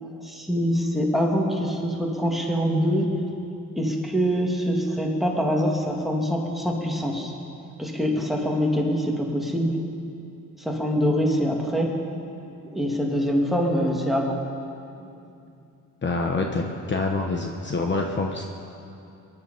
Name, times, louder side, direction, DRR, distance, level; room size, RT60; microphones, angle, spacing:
voice 1, 0.0-3.1 3.8-7.3 7.8-9.8 10.6-12.0 12.2-12.3 12.7-14.4 15.0-15.1, equal, ahead, -1 dB, 2.3 m, -24 dB
voice 2, 16.0-18.4, left 3 dB, 35° left, 2 dB, 1.1 m, -26 dB
23.0 x 11.0 x 5.6 m, 2.6 s
cardioid pair, 115°, 31 cm